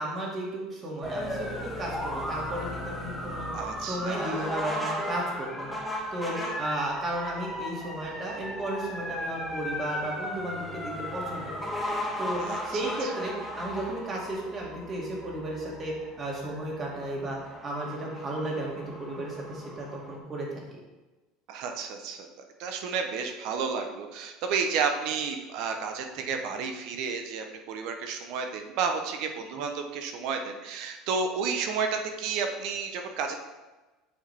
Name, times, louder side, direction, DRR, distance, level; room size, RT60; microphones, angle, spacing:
voice 1, 0.0-3.5 3.9-5.8 6.1-11.4 12.2-20.6, right 1 dB, 35° right, -3 dB, 2.3 m, -34 dB
sound 1, 1.0-20.2, left 1 dB, 5° left, 1.4 m, -36 dB
voice 2, 3.5-4.6 6.4-6.5 12.4-13.1 21.5-22.3 22.6-33.4, right 5 dB, 65° right, 5 dB, 0.8 m, -31 dB
7.6 x 4.8 x 3.5 m, 1.2 s
supercardioid pair, 105°, 0 cm